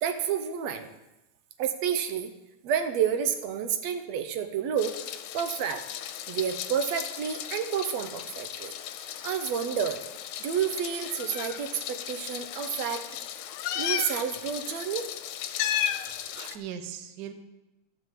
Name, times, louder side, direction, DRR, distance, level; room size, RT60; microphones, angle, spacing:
voice 1, 0.0-0.9 1.6-2.3 2.6-5.0 5.3-5.8 6.3-8.7 9.0-10.0 10.4-13.1 13.8-15.1 16.4-16.6, right 8 dB, 70° right, 8 dB, 2.0 m, -30 dB
Meow, 4.8-16.6, left 10 dB, 90° left, 2.1 m, -35 dB
voice 2, 16.1-17.3, right 9 dB, 85° right, 7 dB, 0.9 m, -40 dB
13.0 x 6.7 x 7.4 m, 0.96 s
omnidirectional pair, 3.4 m